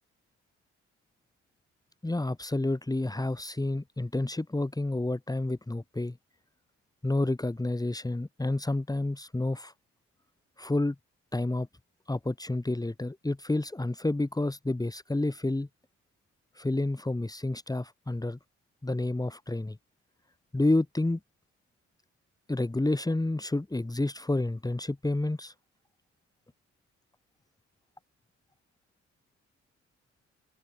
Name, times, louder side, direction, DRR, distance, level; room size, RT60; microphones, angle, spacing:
voice 1, 2.0-6.2 7.0-9.7 10.6-11.0 11.3-11.7 12.1-15.7 16.6-18.4 18.8-19.8 20.5-21.2 22.5-25.5, left 2 dB, 10° left, 4.2 m, -29 dB
open air
cardioid pair, 90°, 30 cm